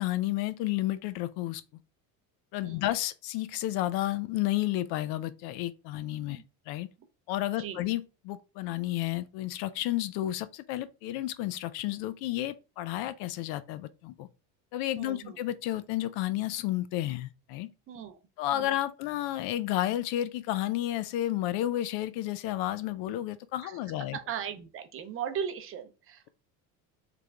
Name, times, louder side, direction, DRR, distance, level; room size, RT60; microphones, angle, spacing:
voice 1, 0.0-1.6 2.5-6.9 7.3-14.3 14.7-17.7 18.4-24.2, left 14 dB, 70° left, 0.5 m, -31 dB
voice 2, 14.9-15.4 17.9-18.2 18.5-18.7 23.6-23.8 24.1-26.3, right 8 dB, 35° right, 0.6 m, -38 dB
3.7 x 3.4 x 3.3 m
cardioid pair, 145°, 40 cm